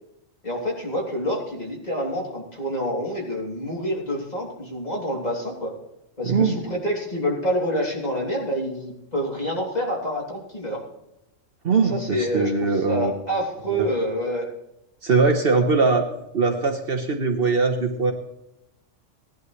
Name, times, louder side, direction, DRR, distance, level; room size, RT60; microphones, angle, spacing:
voice 1, 0.4-5.7 6.2-10.8 11.9-14.5, equal, 35° left, -2 dB, 3.0 m, -27 dB
voice 2, 6.2-6.6 11.6-13.1 13.7-13.9 15.0-16.1 16.3-18.1, right 4 dB, 50° right, 4 dB, 1.1 m, -21 dB
17.0 x 11.0 x 3.2 m, 0.85 s
omnidirectional pair, 1.3 m